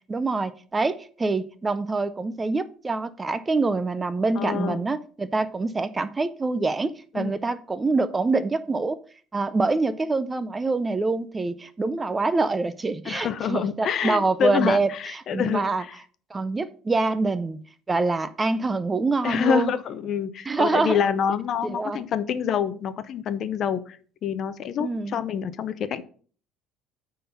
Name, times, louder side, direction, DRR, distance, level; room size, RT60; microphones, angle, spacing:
voice 1, 0.1-9.0 9.3-15.8 16.3-17.6 17.9-19.7 20.5-21.0 21.6-22.0 24.8-25.2, right 3 dB, 15° right, 13 dB, 0.4 m, -25 dB
voice 2, 4.3-4.8 7.1-7.3 13.0-16.0 19.2-26.0, left 8 dB, 35° left, 14 dB, 0.6 m, -27 dB
9.4 x 3.8 x 5.7 m, 0.43 s
cardioid pair, 170°, 0 cm